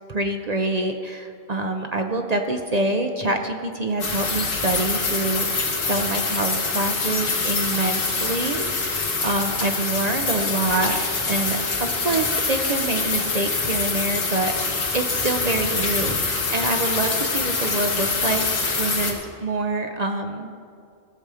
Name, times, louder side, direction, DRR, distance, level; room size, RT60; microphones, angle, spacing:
voice 1, 0.1-11.0 11.3-18.5 18.8-20.5, right 2 dB, 45° right, 4 dB, 0.5 m, -26 dB
sound 1, 4.0-19.1, left 4 dB, 90° left, 1.7 m, -25 dB
15.5 x 6.9 x 4.8 m, 2.3 s
omnidirectional pair, 1.3 m